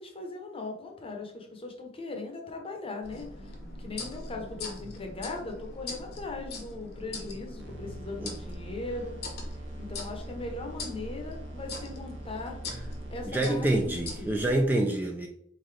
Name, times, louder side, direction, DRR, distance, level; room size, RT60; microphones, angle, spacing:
voice 1, 0.0-3.5 3.8-9.2 9.8-12.6 13.1-14.4, left 3 dB, 30° left, 2 dB, 0.8 m, -39 dB
sound 1, 3.0-14.7, left 2 dB, 55° left, 0.9 m, -41 dB
sound 2, 7.6-13.5, right 2 dB, 65° right, 0.6 m, -44 dB
voice 2, 13.3-15.3, right 1 dB, 10° right, 1 dB, 0.4 m, -26 dB
3.9 x 3.8 x 3.2 m, 0.72 s
head